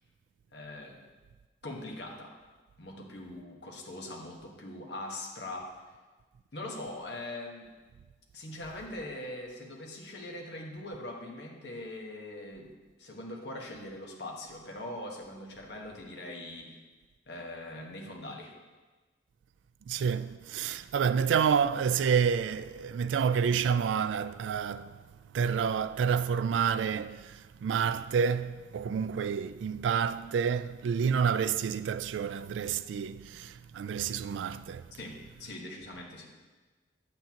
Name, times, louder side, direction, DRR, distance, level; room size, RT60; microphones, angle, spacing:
voice 1, 0.5-1.0 1.6-2.3 2.8-5.7 6.5-7.7 8.3-16.7 17.3-18.5 35.0-36.3, left 1 dB, 70° left, 1.3 m, -42 dB
voice 2, 19.9-25.0 25.3-34.8, right 7 dB, 90° right, 0.3 m, -29 dB
8.8 x 8.1 x 2.9 m
head